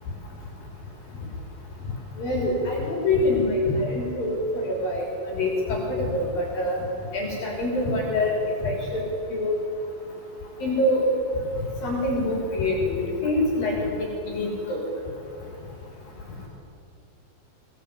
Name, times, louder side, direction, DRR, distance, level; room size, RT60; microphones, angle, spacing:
voice 1, 2.2-6.8 7.1-8.3 8.6-8.8 9.3-9.6 10.6-11.0 11.8-13.9 14.3-14.8, left 2 dB, 50° left, -2 dB, 5.0 m, -25 dB
24.0 x 18.0 x 8.5 m, 2.7 s
omnidirectional pair, 5.7 m